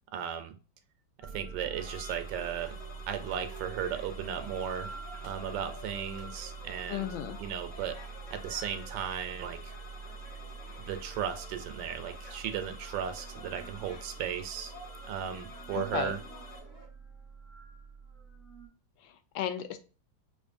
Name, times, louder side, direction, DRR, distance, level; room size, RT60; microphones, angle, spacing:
voice 1, 0.1-0.6 1.2-2.8 3.1-4.9 5.2-7.1 7.4-8.0 8.3-9.8 10.8-14.7 15.1-16.2, right 9 dB, 75° right, 8 dB, 1.2 m, -36 dB
sound 1, 1.2-18.7, right 5 dB, ahead, 0.4 m, -45 dB
sound 2, 1.6-16.9, equal, 30° left, 0.8 m, -53 dB
sound 3, 1.8-16.6, left 3 dB, 55° left, 0.5 m, -51 dB
voice 2, 6.9-7.4 15.7-16.1 19.0-19.8, left 10 dB, 85° left, 8 dB, 1.4 m, -34 dB
4.9 x 2.5 x 2.5 m, 0.34 s
omnidirectional pair, 2.1 m